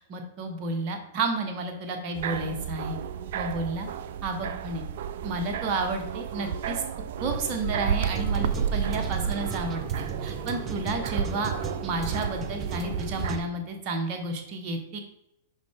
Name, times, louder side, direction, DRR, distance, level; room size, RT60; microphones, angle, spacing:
voice 1, 0.1-3.0 3.3-3.9 4.2-4.8 5.2-6.8 7.2-11.5 11.8-15.0, right 2 dB, 45° right, 4 dB, 1.4 m, -31 dB
sound 1, 2.1-13.4, right 8 dB, 65° right, 0.4 m, -32 dB
sound 2, 7.2-13.4, right 5 dB, 25° right, 0.7 m, -37 dB
6.2 x 5.5 x 3.7 m, 0.82 s
hypercardioid pair, 110°, 0 cm